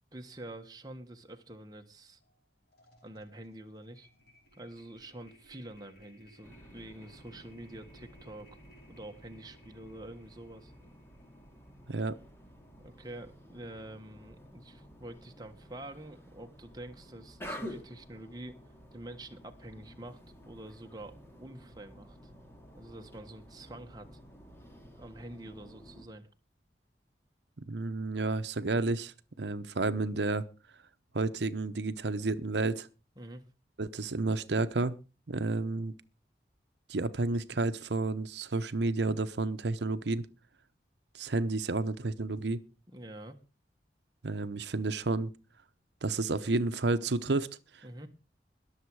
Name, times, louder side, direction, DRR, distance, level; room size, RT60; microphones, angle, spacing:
voice 1, 0.1-2.2 3.0-4.1 4.5-8.5 8.9-10.7 12.8-18.6 18.9-20.2 20.4-22.2 22.7-24.1 25.0-26.3 33.2-33.4 42.9-43.4 47.8-48.1, right 1 dB, 20° right, 1.4 m, -47 dB
sound 1, 2.2-2.4 2.7-12.9, equal, 65° left, 5.7 m, -62 dB
sound 2, 6.4-26.1, equal, 15° left, 2.5 m, -51 dB
voice 2, 27.7-30.4 31.1-32.9 33.8-35.0 35.3-35.9 36.9-40.3 41.1-42.6 44.2-45.3 46.0-47.5 47.7-47.8, right 3 dB, 80° right, 0.8 m, -31 dB
21.5 x 7.4 x 4.7 m
head